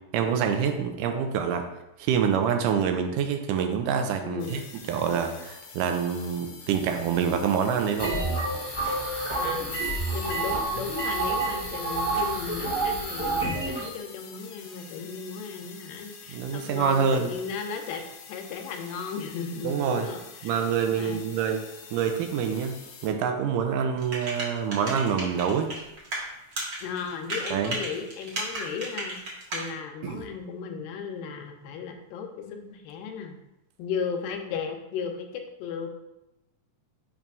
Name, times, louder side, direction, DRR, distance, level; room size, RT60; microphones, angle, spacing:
voice 1, 0.1-1.7 2.0-4.6 4.9-8.2 16.3-17.3 19.6-20.1 20.4-22.8 23.0-25.7 27.5-27.8 30.0-30.3, right 7 dB, 80° right, 6 dB, 2.1 m, -26 dB
voice 2, 4.2-4.7 8.1-8.4 9.3-18.0 18.3-20.6 20.9-21.2 26.8-33.4 33.8-35.9, left 6 dB, 90° left, 4 dB, 2.4 m, -35 dB
sound 1, 4.4-23.1, left 5 dB, 70° left, 2.2 m, -47 dB
sound 2, 8.0-13.9, right 2 dB, 50° left, 0.9 m, -28 dB
sound 3, 24.0-26.2 26.5-29.7, right 2 dB, 50° right, 1.3 m, -33 dB
7.3 x 2.4 x 5.3 m, 0.92 s
omnidirectional pair, 3.8 m